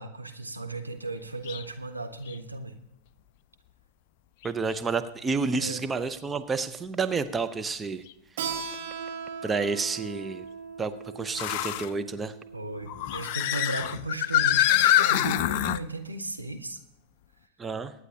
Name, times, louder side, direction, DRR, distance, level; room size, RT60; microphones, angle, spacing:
voice 1, 0.0-2.7 5.5-5.8 12.5-16.8, right 2 dB, 85° right, 5 dB, 1.1 m, -35 dB
sound 1, 1.5-1.6 2.3-2.4 4.4-4.5 8.1-8.2 11.4-11.9 12.9-15.8, left 13 dB, 50° left, 0.4 m, -25 dB
voice 2, 4.4-8.0 9.4-10.5 10.8-12.3 17.6-17.9, right 4 dB, 15° right, 10 dB, 0.7 m, -30 dB
Keyboard (musical), 8.4-13.6, right 6 dB, 55° right, 1.9 m, -39 dB
23.5 x 9.5 x 2.9 m, 0.84 s
figure-of-eight pair, 90°, 0 cm